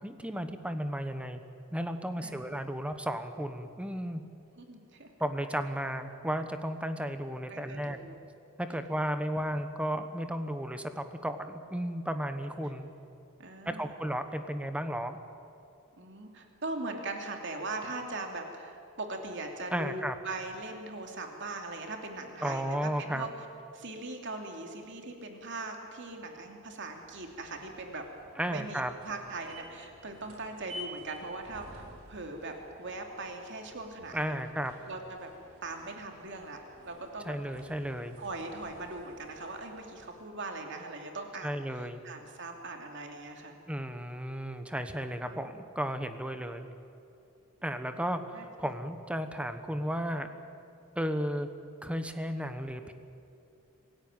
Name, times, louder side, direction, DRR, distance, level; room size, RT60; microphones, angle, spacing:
voice 1, 0.0-1.4 1.7-4.2 5.2-8.0 8.6-12.9 13.6-15.2 19.7-20.2 22.4-23.3 28.4-28.9 34.1-34.7 37.2-38.2 41.4-42.0 43.7-46.7 47.6-50.3 50.9-51.5 51.8-52.9, equal, 5° right, 8 dB, 1.2 m, -34 dB
voice 2, 4.6-5.1 7.5-8.2 13.4-14.0 16.0-23.3 23.7-28.0 28.5-34.3 34.9-35.3 35.6-36.6 36.8-37.4 38.2-43.6 45.3-45.6 48.3-48.7, right 2 dB, 60° right, 3 dB, 2.7 m, -40 dB
sound 1, 26.9-40.4, equal, 90° right, 3.9 m, -52 dB
27.0 x 17.0 x 9.0 m, 2.6 s
head